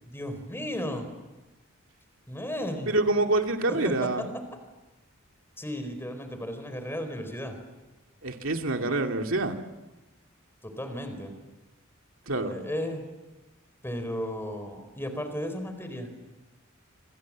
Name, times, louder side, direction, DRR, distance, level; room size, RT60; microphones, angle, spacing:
voice 1, 0.0-1.1 2.3-2.9 3.7-4.4 5.6-7.6 10.6-11.3 12.5-13.0 13.8-16.1, equal, 10° left, 8 dB, 4.3 m, -34 dB
voice 2, 2.9-4.2 8.2-9.6 12.3-12.6, right 2 dB, 70° right, 4 dB, 2.6 m, -26 dB
28.0 x 26.0 x 7.5 m, 1.1 s
head